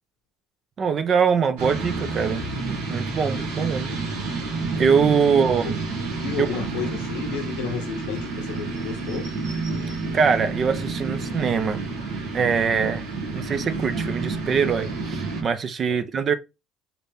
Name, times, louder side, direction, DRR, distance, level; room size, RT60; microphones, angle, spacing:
voice 1, 0.8-3.9 4.8-5.8 6.4-6.5 9.9-11.9 12.3-13.1 13.3-16.3, right 6 dB, 40° right, 0.5 m, -23 dB
sound 1, 1.6-15.4, right 3 dB, 85° right, 1.7 m, -30 dB
voice 2, 5.2-5.8 6.2-9.3 15.9-16.0, left 7 dB, 80° left, 0.9 m, -32 dB
4.0 x 2.7 x 3.4 m
supercardioid pair, 90°, 0 cm